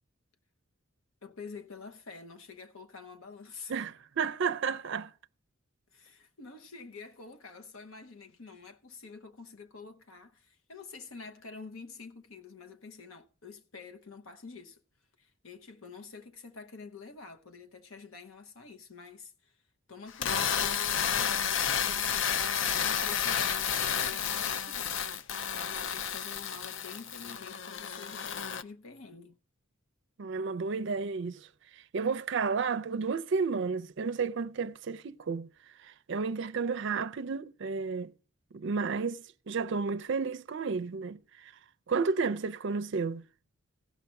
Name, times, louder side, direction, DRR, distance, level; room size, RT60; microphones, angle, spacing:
voice 1, 1.2-3.8 5.9-14.8 15.2-19.6 19.9-29.4, left 4 dB, 80° left, 1.0 m, -48 dB
voice 2, 3.7-5.1 30.2-31.5 31.7-35.5 35.8-38.1 38.5-41.5 41.9-43.2, right 5 dB, 60° right, 0.4 m, -32 dB
sound 1, 20.1-28.6, left 8 dB, 60° left, 0.5 m, -31 dB
16.5 x 5.8 x 5.2 m
head